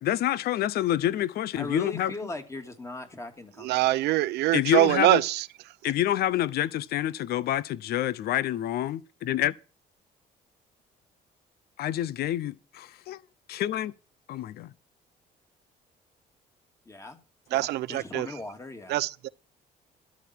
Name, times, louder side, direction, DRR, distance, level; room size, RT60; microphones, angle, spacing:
voice 1, 0.0-2.1 4.5-5.2 5.8-9.5 11.8-13.2 13.5-13.9 14.3-14.7, left 12 dB, 70° left, 0.8 m, -27 dB
voice 2, 1.6-3.9 16.9-17.2 17.5-19.1, left 2 dB, 15° left, 2.7 m, -39 dB
voice 3, 3.6-5.4 17.5-18.3 18.9-19.3, right 16 dB, 80° right, 0.8 m, -24 dB
13.0 x 11.5 x 4.6 m
cardioid pair, 110°, 17 cm